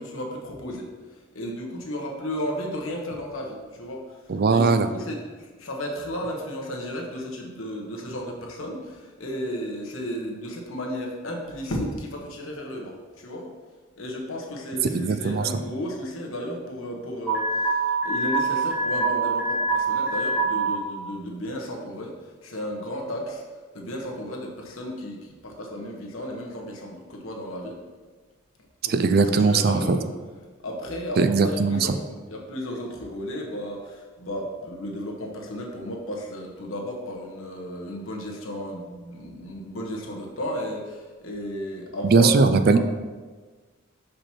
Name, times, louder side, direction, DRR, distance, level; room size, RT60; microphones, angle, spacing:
voice 1, 0.0-4.1 4.5-13.5 14.0-23.4 23.7-27.8 28.8-30.1 30.6-42.3, equal, 75° left, 0 dB, 1.2 m, -34 dB
voice 2, 4.3-4.9 14.9-15.4 28.9-30.0 31.2-31.8 42.1-42.8, right 4 dB, 45° right, 9 dB, 0.4 m, -19 dB
Alarm, 17.3-20.7, right 3 dB, ahead, 2.1 m, -24 dB
5.9 x 5.1 x 4.4 m, 1.4 s
head